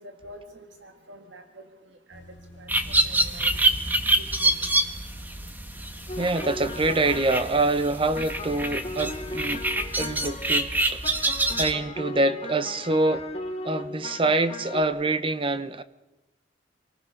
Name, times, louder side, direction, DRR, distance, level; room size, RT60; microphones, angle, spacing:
voice 1, 0.0-1.6 2.1-2.7 3.0-3.6 4.1-4.6, right 1 dB, 85° right, 2.0 m, -46 dB
sound 1, 2.1-10.3, left 1 dB, 80° left, 3.0 m, -50 dB
sound 2, 2.7-11.7, right 1 dB, 10° right, 1.4 m, -26 dB
sound 3, 6.1-14.8, left 2 dB, 35° left, 1.8 m, -38 dB
voice 2, 6.2-9.6 10.0-11.0 11.3-13.3 13.6-15.8, right 2 dB, 30° right, 0.9 m, -25 dB
27.0 x 19.5 x 6.5 m
head